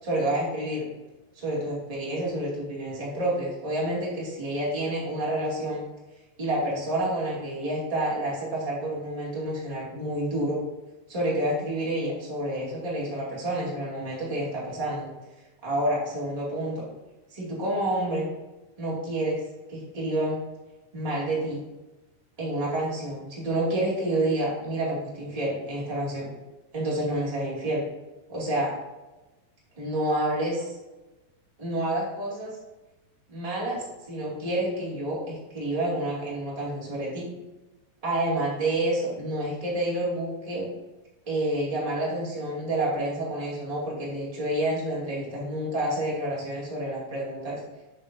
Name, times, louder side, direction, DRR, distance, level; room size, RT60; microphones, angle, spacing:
voice 1, 0.0-0.8 1.3-5.8 6.4-10.6 11.1-15.1 15.6-16.8 17.3-18.3 18.8-19.4 19.7-20.4 20.9-21.6 22.4-26.3 26.7-27.8 28.3-28.7 29.8-30.8 31.6-32.5 33.3-37.3 38.0-40.7 41.2-47.6, right 1 dB, 20° right, -7 dB, 0.9 m, -29 dB
7.7 x 6.8 x 2.6 m, 1.1 s
omnidirectional pair, 4.6 m